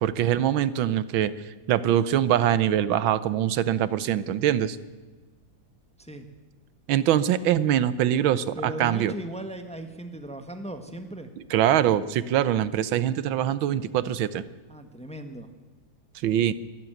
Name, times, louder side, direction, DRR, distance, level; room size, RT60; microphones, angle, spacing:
voice 1, 0.0-1.3 1.7-4.8 6.9-9.1 11.5-14.4 16.2-16.5, right 11 dB, 90° right, 16 dB, 1.6 m, -23 dB
voice 2, 8.6-11.3 14.7-15.5, right 1 dB, 5° left, 7 dB, 1.3 m, -37 dB
24.5 x 12.5 x 9.2 m, 1.3 s
omnidirectional pair, 2.1 m